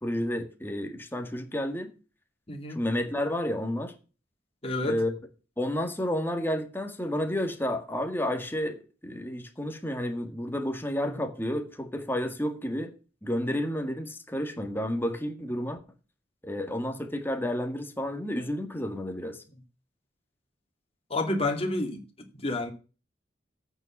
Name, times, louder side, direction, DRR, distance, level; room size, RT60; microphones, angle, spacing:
voice 1, 0.0-1.9 2.7-3.9 4.8-5.1 5.6-12.9 13.2-15.8 16.4-19.4, left 1 dB, 10° left, 1.8 m, -31 dB
voice 2, 2.5-2.8 4.6-5.0 11.0-11.2 21.1-22.0 22.3-22.7, left 2 dB, 30° left, 2.4 m, -29 dB
8.8 x 6.8 x 7.2 m
head